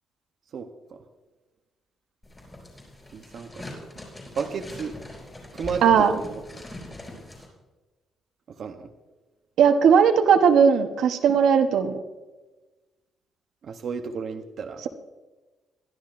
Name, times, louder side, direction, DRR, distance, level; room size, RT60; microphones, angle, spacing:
voice 1, 0.5-1.0 3.1-3.6 4.3-4.9 5.5-6.6 8.5-8.9 13.6-14.8, right 5 dB, 50° right, 4 dB, 0.8 m, -33 dB
sound 1, 2.2-7.5, left 1 dB, 15° left, 4.2 m, -42 dB
voice 2, 5.8-6.1 9.6-12.0, right 7 dB, 70° right, 6 dB, 0.9 m, -18 dB
21.0 x 12.5 x 2.5 m, 1.2 s
cardioid pair, 160°, 0 cm